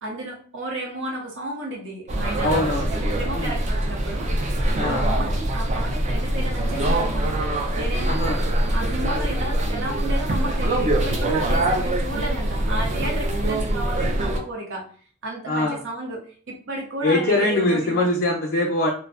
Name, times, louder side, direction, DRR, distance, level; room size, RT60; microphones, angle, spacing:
voice 1, 0.0-4.3 4.7-8.4 8.7-14.9 15.2-18.1, right 1 dB, 60° right, -2 dB, 0.7 m, -33 dB
sound 1, 2.1-14.4, right 1 dB, 30° right, 0.4 m, -23 dB
voice 2, 2.4-2.9 3.3-3.5 4.8-5.1 8.0-8.4 15.5-15.8 17.0-18.9, left 2 dB, 45° left, 0 dB, 0.4 m, -22 dB
2.5 x 2.1 x 2.4 m, 0.44 s
head